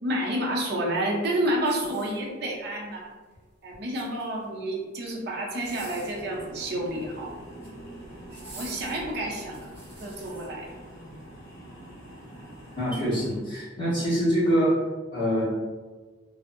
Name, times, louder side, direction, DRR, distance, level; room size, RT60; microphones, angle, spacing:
voice 1, 0.0-3.1 3.6-7.3 8.3-9.7 10.0-11.1, right 1 dB, 55° right, -2 dB, 0.6 m, -30 dB
sound 1, 1.6-2.6 3.7-4.5 5.4-6.3 7.3-7.8 8.3-10.5 11.1-11.2, right 1 dB, 10° right, 1.0 m, -48 dB
sound 2, 5.6-13.4, right 1 dB, 55° left, 0.9 m, -45 dB
voice 2, 12.8-14.7 15.1-15.4, equal, 25° left, -11 dB, 1.3 m, -24 dB
3.4 x 2.0 x 2.5 m, 1.3 s
head